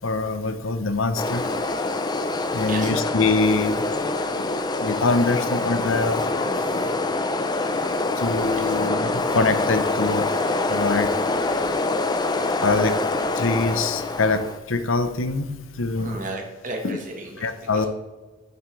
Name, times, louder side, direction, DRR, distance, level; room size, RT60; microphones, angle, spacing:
voice 1, 0.0-1.4 2.5-3.8 4.8-6.2 8.2-10.3 10.7-11.1 12.6-12.9 13.3-14.4 14.7-16.2 16.8-17.0 17.4-17.9, left 3 dB, 75° left, 10 dB, 0.8 m, -24 dB
sound 1, 1.2-14.6, left 2 dB, 20° left, 0.5 m, -25 dB
voice 2, 6.5-7.1 8.5-8.7 16.0-17.9, right 2 dB, 40° right, 2 dB, 1.5 m, -35 dB
11.0 x 7.2 x 3.2 m, 1.3 s
head